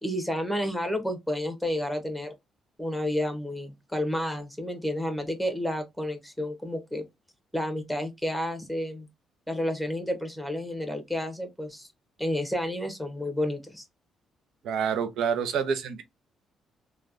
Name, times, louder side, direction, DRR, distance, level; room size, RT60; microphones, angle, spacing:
voice 1, 0.0-2.3 2.8-7.0 7.5-9.1 9.5-11.9 12.2-13.8, left 1 dB, ahead, 1.1 m, -30 dB
voice 2, 14.6-16.0, right 7 dB, 80° right, 0.7 m, -27 dB
3.1 x 2.4 x 2.5 m
cardioid pair, 90°, 0 cm